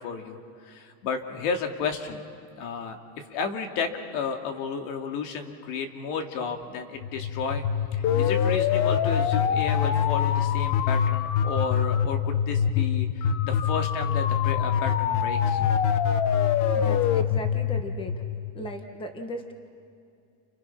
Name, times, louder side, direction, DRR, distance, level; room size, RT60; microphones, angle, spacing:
voice 1, 0.0-2.2 2.6-7.6 7.9-15.7, left 5 dB, 85° left, 4 dB, 2.7 m, -33 dB
sound 1, 7.0-18.8, left 8 dB, 40° left, 1.1 m, -24 dB
voice 2, 16.7-18.2 18.5-19.5, equal, 10° left, 6 dB, 1.3 m, -37 dB
30.0 x 30.0 x 5.9 m, 2.4 s
cardioid pair, 180°, 43 cm